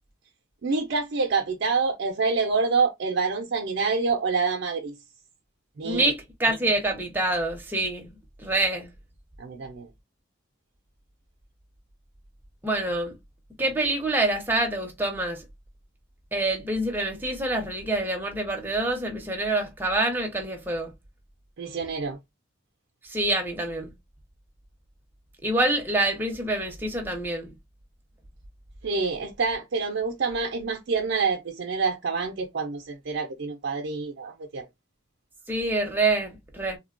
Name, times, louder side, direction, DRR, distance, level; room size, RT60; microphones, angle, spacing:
voice 1, 0.6-4.9 5.8-6.1 9.4-9.9 21.6-22.2 28.8-34.7, right 4 dB, 60° right, 0.4 m, -27 dB
voice 2, 5.8-8.1 8.4-8.9 12.6-13.1 13.6-15.4 16.3-20.9 23.1-23.9 25.4-27.5 35.5-36.8, right 2 dB, 10° right, 0.6 m, -26 dB
3.2 x 2.1 x 2.4 m
head